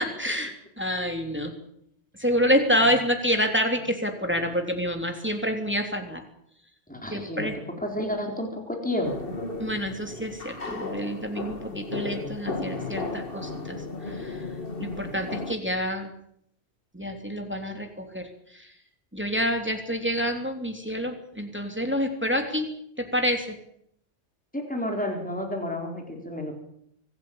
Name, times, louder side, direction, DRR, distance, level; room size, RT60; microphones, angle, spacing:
voice 1, 0.0-1.5 2.2-6.2 7.1-7.6 9.6-13.8 14.0-14.4 14.8-16.1 16.9-18.7 19.1-22.7 23.0-23.6, equal, 10° right, 4 dB, 3.1 m, -28 dB
voice 2, 6.9-7.5 7.8-9.3 24.5-26.5, left 1 dB, 5° left, 2 dB, 4.3 m, -30 dB
sound 1, 9.0-15.6, left 3 dB, 50° left, 2.2 m, -34 dB
25.0 x 14.5 x 8.8 m, 0.71 s
omnidirectional pair, 1.2 m